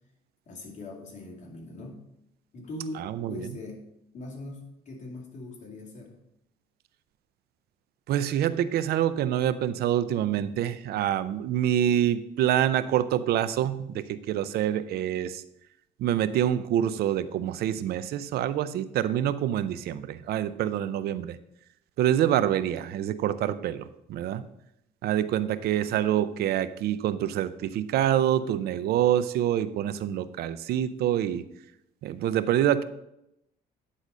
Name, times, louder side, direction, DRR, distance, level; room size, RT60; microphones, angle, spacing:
voice 1, 0.5-2.0 2.5-3.9 4.1-6.2, left 2 dB, 45° left, 0 dB, 2.5 m, -41 dB
voice 2, 2.9-3.5 8.1-15.4 16.0-21.4 22.0-24.4 25.0-31.4 32.0-32.8, right 11 dB, 70° right, 14 dB, 0.6 m, -26 dB
9.8 x 4.0 x 6.2 m, 0.82 s
cardioid pair, 110°, 17 cm